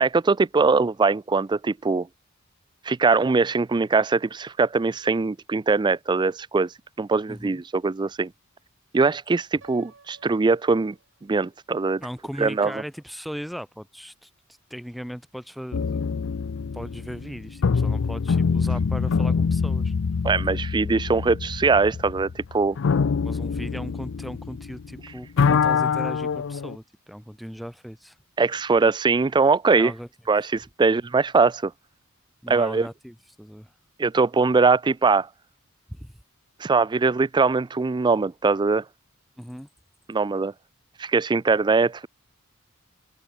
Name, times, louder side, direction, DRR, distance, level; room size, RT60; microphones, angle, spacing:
voice 1, 0.0-2.1 2.9-6.7 7.0-8.3 8.9-11.0 11.2-12.0 12.4-12.7 20.2-22.8 28.4-29.9 30.3-31.7 32.5-32.9 34.0-35.3 36.6-38.8 40.1-40.5 41.0-42.1, right 4 dB, 20° right, 0.4 m, -21 dB
voice 2, 7.3-7.6 12.0-14.3 14.7-16.0 16.7-19.9 23.2-28.2 29.7-30.1 32.4-33.7 35.9-36.1 39.4-39.7, equal, ahead, 1.5 m, -38 dB
Piano, 9.6-11.6, right 4 dB, 65° right, 2.7 m, -55 dB
sound 1, 15.7-25.0 25.2-26.7, left 5 dB, 65° left, 0.5 m, -25 dB
open air
head